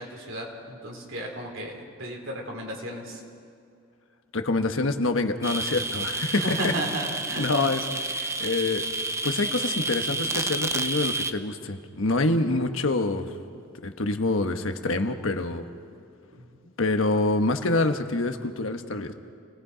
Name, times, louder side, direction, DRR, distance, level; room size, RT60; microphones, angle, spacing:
voice 1, 0.0-3.2 6.4-7.5 16.4-16.5, right 1 dB, 70° right, 0 dB, 3.9 m, -34 dB
voice 2, 4.3-6.7 7.4-8.8 9.2-13.3 13.8-15.6 16.8-19.1, left 2 dB, 75° left, 7 dB, 1.2 m, -26 dB
sound 1, 5.4-11.3, right 2 dB, 15° right, 0.7 m, -30 dB
29.0 x 19.0 x 5.1 m, 2.4 s
head